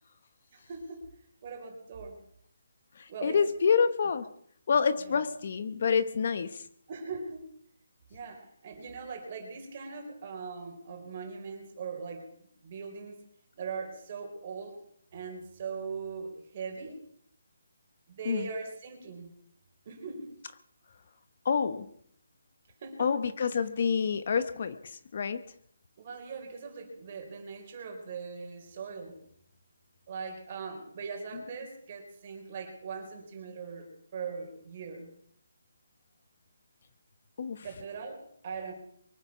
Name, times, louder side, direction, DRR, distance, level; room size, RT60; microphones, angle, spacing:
voice 1, 0.5-1.1 1.4-2.2 3.1-3.4 5.0-5.2 6.9-7.5 8.1-12.3 12.6-13.2 13.5-14.8 15.1-17.0 18.1-19.3 19.8-20.3 22.8-23.1 26.0-29.2 30.1-35.1 37.6-38.7, right 5 dB, 30° right, 3 dB, 4.4 m, -40 dB
voice 2, 3.0-4.3 4.7-6.7 18.2-18.5 21.4-21.9 23.0-25.4 37.4-37.6, left 6 dB, 45° left, 13 dB, 0.9 m, -28 dB
23.5 x 9.6 x 6.1 m, 0.66 s
hypercardioid pair, 170°, 0 cm